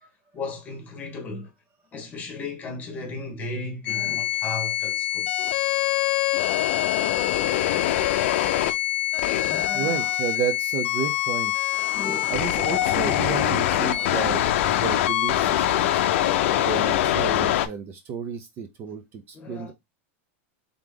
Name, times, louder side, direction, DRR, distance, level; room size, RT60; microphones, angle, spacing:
voice 1, 0.3-1.5 1.9-5.3 9.4-9.9 11.9-12.5 13.9-14.3 19.3-19.7, left 3 dB, 20° left, 1.3 m, -35 dB
sound 1, 3.9-17.7, left 13 dB, 60° left, 0.5 m, -24 dB
voice 2, 9.7-11.5 12.3-16.1 16.6-19.7, right 7 dB, 30° right, 0.7 m, -32 dB
3.6 x 3.2 x 3.7 m
supercardioid pair, 150°, 7 cm